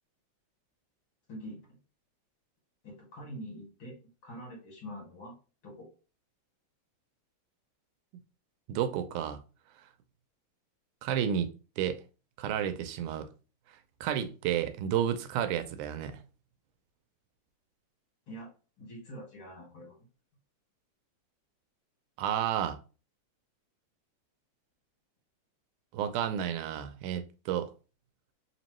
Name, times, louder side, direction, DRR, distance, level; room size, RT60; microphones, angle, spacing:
voice 1, 1.3-1.7 2.8-5.3 5.6-5.9 18.3-18.5 18.8-20.0, equal, 45° left, 2.4 m, -45 dB
voice 2, 8.7-9.4 11.0-11.5 11.8-12.0 12.4-13.3 14.0-16.2 22.2-22.8 25.9-27.7, right 9 dB, 85° right, 2.0 m, -31 dB
4.6 x 3.0 x 2.9 m
omnidirectional pair, 3.5 m